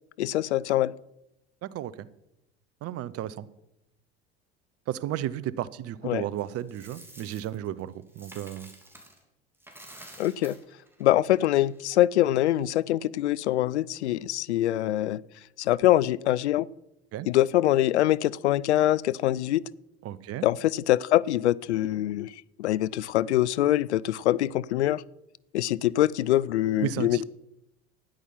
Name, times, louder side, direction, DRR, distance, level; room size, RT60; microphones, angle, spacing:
voice 1, 0.2-0.9 6.0-6.2 10.2-10.5 11.0-15.2 15.6-16.7 17.3-19.6 20.4-25.0 25.5-27.2, left 14 dB, 85° left, 22 dB, 0.5 m, -24 dB
voice 2, 1.6-2.1 2.8-3.5 4.9-8.7 17.1-17.3 20.0-20.5 26.8-27.2, right 12 dB, 45° right, 19 dB, 0.8 m, -33 dB
Coin (dropping), 6.4-9.2 9.5-11.8, right 1 dB, 5° right, 3.1 m, -50 dB
12.5 x 10.0 x 5.7 m, 0.86 s
hypercardioid pair, 75°, 33 cm